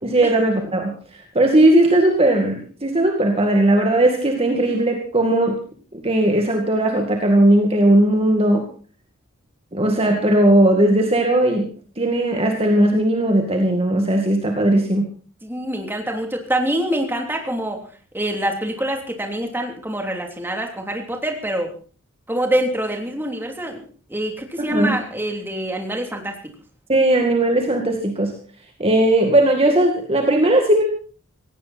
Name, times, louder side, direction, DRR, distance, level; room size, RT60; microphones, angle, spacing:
voice 1, 0.0-5.6 5.9-8.6 9.7-11.7 12.0-15.1 24.6-25.0 26.9-28.3 28.8-30.8, right 1 dB, 25° right, 3 dB, 2.1 m, -17 dB
voice 2, 15.4-17.8 18.1-21.7 22.3-23.8 24.1-26.4, right 1 dB, 10° right, 3 dB, 3.1 m, -25 dB
18.0 x 16.5 x 4.3 m, 0.41 s
head